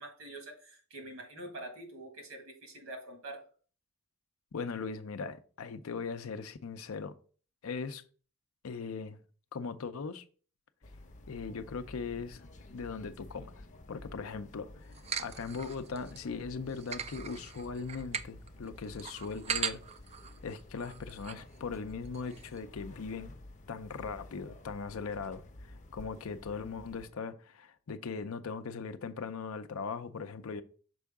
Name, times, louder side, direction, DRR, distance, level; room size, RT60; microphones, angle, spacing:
voice 1, 0.0-3.4, right 1 dB, 70° right, 1.8 m, -45 dB
voice 2, 4.5-7.1 7.6-8.0 8.6-9.2 9.5-10.2 11.3-12.4 12.7-19.8 20.4-23.3 23.7-30.6, left 5 dB, 70° left, 0.5 m, -39 dB
sound 1, 10.8-27.1, left 1 dB, 35° left, 0.7 m, -51 dB
sound 2, 14.9-16.2 16.7-21.4 21.7-21.8 22.0-22.6, right 7 dB, 30° right, 0.3 m, -40 dB
6.1 x 4.6 x 3.5 m
head